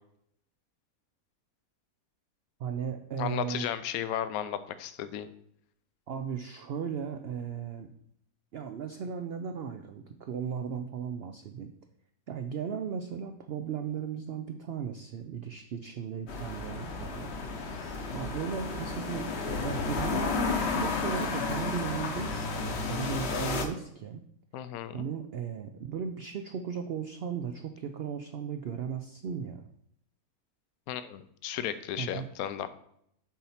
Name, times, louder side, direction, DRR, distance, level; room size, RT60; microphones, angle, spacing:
voice 1, 2.6-3.7 6.1-7.9 8.5-11.7 12.3-17.3 18.1-19.3 19.6-24.2 24.9-29.7 32.0-32.3, right 7 dB, 70° right, 7 dB, 0.5 m, -36 dB
voice 2, 3.2-5.3 24.5-25.0 30.9-32.7, left 10 dB, 75° left, 12 dB, 1.0 m, -34 dB
sound 1, 16.3-23.6, left 4 dB, 50° left, 1.0 m, -32 dB
7.3 x 4.2 x 5.6 m, 0.71 s
omnidirectional pair, 1.6 m